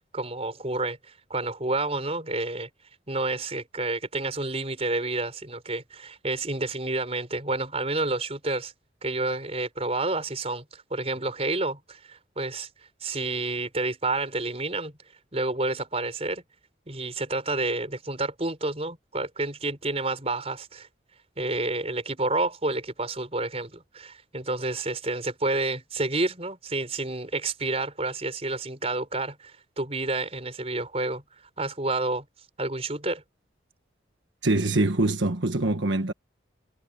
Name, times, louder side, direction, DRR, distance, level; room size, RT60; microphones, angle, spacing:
voice 1, 0.1-2.7 3.1-8.7 9.0-12.7 13.0-14.9 15.3-16.4 16.9-20.9 21.4-31.2 31.6-32.3 32.6-33.2, right 2 dB, 35° right, 5.3 m, -29 dB
voice 2, 34.4-36.1, right 2 dB, 75° right, 1.5 m, -24 dB
head